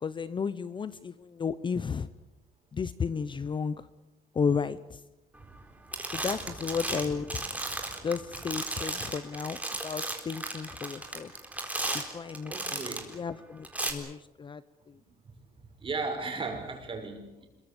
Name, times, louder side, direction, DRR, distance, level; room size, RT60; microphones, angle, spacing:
voice 1, 0.0-2.1 2.7-3.9 4.3-5.0 6.1-7.5 8.0-11.3 11.9-14.6 14.9-15.0, left 6 dB, 30° left, 15 dB, 0.8 m, -33 dB
sound 1, 5.4-5.7 5.9-13.1 13.6-13.9, right 2 dB, 10° right, 3.9 m, -35 dB
voice 2, 12.5-13.1 15.0-15.3 15.8-17.5, right 3 dB, 30° right, 4 dB, 6.4 m, -36 dB
26.0 x 23.0 x 7.1 m, 0.97 s
cardioid pair, 110°, 17 cm